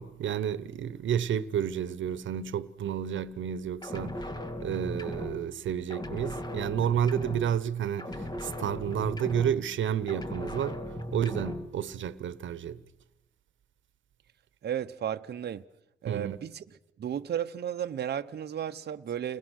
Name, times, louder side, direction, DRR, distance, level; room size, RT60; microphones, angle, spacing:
voice 1, 0.0-4.3 4.6-10.8 11.1-12.8 16.1-16.4, right 9 dB, 80° right, 1.1 m, -31 dB
sound 1, 3.8-5.6 5.9-7.7 8.0-9.8 10.1-11.8, left 1 dB, 20° left, 1.8 m, -37 dB
voice 2, 14.6-15.6 16.0-16.6 17.0-19.4, right 9 dB, 60° right, 0.8 m, -34 dB
30.0 x 21.0 x 6.5 m
cardioid pair, 105°, 19 cm